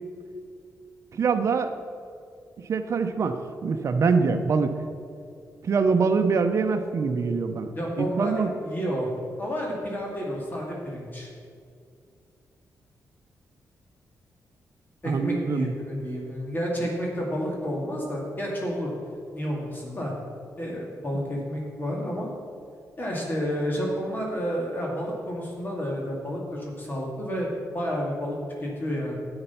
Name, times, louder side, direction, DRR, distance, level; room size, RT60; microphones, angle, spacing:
voice 1, 1.1-1.7 2.6-4.7 5.6-7.7 8.0-8.5 15.0-15.7, right 5 dB, 55° right, 7 dB, 0.7 m, -24 dB
voice 2, 7.7-9.1 9.4-11.3 15.0-18.9 19.3-20.1 20.6-22.3 23.0-29.1, equal, 30° left, -2 dB, 2.3 m, -30 dB
9.7 x 7.9 x 5.7 m, 2.3 s
cardioid pair, 95°, 6 cm